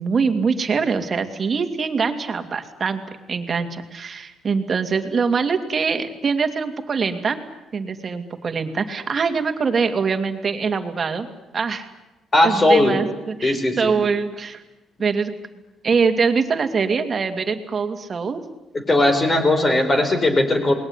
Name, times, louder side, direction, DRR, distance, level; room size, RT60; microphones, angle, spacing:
voice 1, 0.0-3.0 3.3-7.4 7.7-11.3 11.5-11.9 12.4-14.6 15.0-15.3 15.8-18.4, right 5 dB, 35° right, 6 dB, 2.6 m, -23 dB
voice 2, 12.3-13.0 13.4-13.9 18.9-20.7, left 1 dB, 25° left, 6 dB, 4.8 m, -18 dB
28.5 x 20.5 x 9.9 m, 1.1 s
cardioid pair, 135°, 0 cm